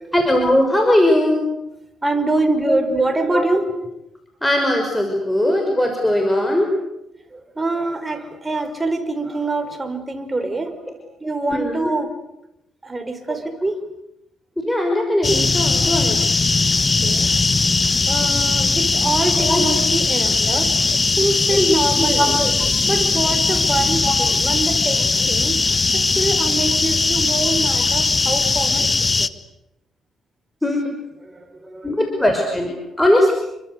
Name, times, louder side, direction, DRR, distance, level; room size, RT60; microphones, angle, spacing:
voice 1, 0.1-1.5 2.7-2.8 3.3-3.4 4.4-6.7 10.4-10.5 11.5-11.9 13.3-13.4 14.6-16.2 19.4-19.6 20.5-20.6 22.0-22.5 24.0-24.1 30.6-30.9 31.8-33.3, left 1 dB, 10° left, 3 dB, 5.8 m, -19 dB
voice 2, 2.0-3.7 7.3-10.7 11.2-12.1 12.8-13.8 17.0-17.3 18.1-22.4 22.9-25.6 25.9-29.3 31.2-31.9, right 2 dB, 15° right, 6 dB, 5.2 m, -25 dB
sound 1, 15.2-29.3, left 3 dB, 30° left, 1.3 m, -19 dB
29.0 x 24.5 x 8.3 m, 0.87 s
cardioid pair, 90°, 0 cm